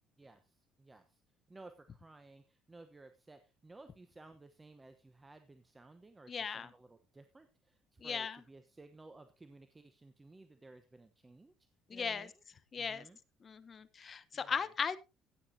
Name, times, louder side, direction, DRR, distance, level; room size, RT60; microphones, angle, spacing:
voice 1, 0.2-1.2 1.5-11.5 11.9-12.3 12.8-13.2 14.3-14.7, right 2 dB, 15° right, 9 dB, 1.0 m, -57 dB
voice 2, 6.3-6.7 8.0-8.4 11.9-12.3 12.7-13.1 13.4-15.0, left 6 dB, 35° left, 14 dB, 0.9 m, -37 dB
15.5 x 9.4 x 2.8 m, 0.27 s
cardioid pair, 95°, 0 cm